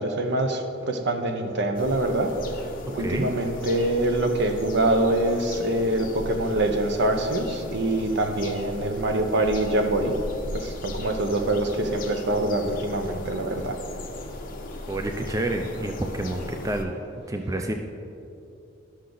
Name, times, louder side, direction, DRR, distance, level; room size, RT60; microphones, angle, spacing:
voice 1, 0.0-10.2 10.5-13.8, right 1 dB, 60° right, 5 dB, 0.8 m, -25 dB
sound 1, 1.7-16.8, left 2 dB, 45° left, 0.8 m, -37 dB
voice 2, 14.9-17.0 17.3-17.7, right 1 dB, 15° right, 4 dB, 0.4 m, -28 dB
11.5 x 6.4 x 3.9 m, 2.7 s
head